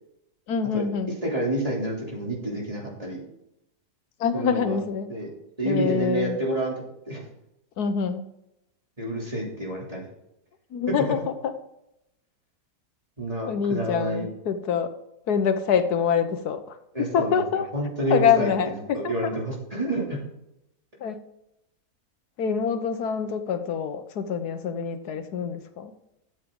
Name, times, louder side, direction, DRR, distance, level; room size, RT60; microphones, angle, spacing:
voice 1, 0.5-1.2 4.2-5.1 5.6-6.4 7.8-8.3 10.7-11.5 13.5-14.9 15.3-17.7 18.1-19.1 21.0-21.1 22.4-25.9, left 7 dB, 85° left, 9 dB, 1.6 m, -25 dB
voice 2, 1.2-3.2 4.3-4.8 5.1-5.3 5.6-6.7 7.1-7.2 9.0-10.1 13.2-14.3 16.9-17.4 17.7-18.5 18.9-20.2, right 1 dB, 25° right, -3 dB, 3.1 m, -28 dB
13.0 x 8.3 x 3.8 m, 0.83 s
omnidirectional pair, 1.6 m